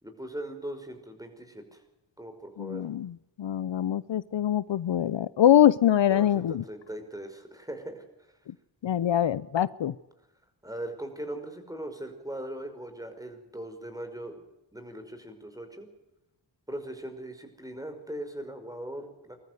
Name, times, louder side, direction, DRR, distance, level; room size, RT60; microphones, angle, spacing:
voice 1, 0.0-1.8 2.2-2.9 6.1-8.0 10.6-14.4 14.7-15.9 16.7-19.4, right 1 dB, 10° right, 6 dB, 5.5 m, -39 dB
voice 2, 2.6-6.6 8.8-9.9, left 10 dB, 75° left, 19 dB, 0.7 m, -24 dB
21.5 x 14.0 x 9.6 m, 0.97 s
cardioid pair, 45°, 45 cm